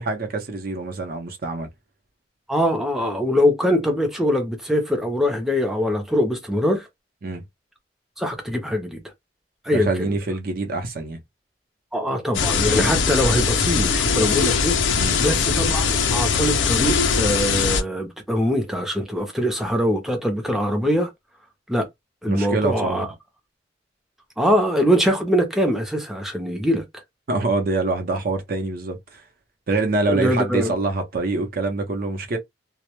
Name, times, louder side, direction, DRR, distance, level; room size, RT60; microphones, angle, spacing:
voice 1, 0.0-1.7 7.2-7.4 9.7-11.2 14.9-15.2 22.3-23.1 27.3-29.2 29.7-32.4, right 3 dB, 50° right, 0.5 m, -25 dB
voice 2, 2.5-6.9 8.2-9.0 9.6-10.1 11.9-14.8 15.2-21.1 21.7-21.9 22.2-23.1 24.4-26.8 30.1-30.8, equal, ahead, 0.4 m, -22 dB
sound 1, 12.3-17.8, left 5 dB, 85° left, 0.5 m, -21 dB
2.1 x 2.0 x 2.9 m
head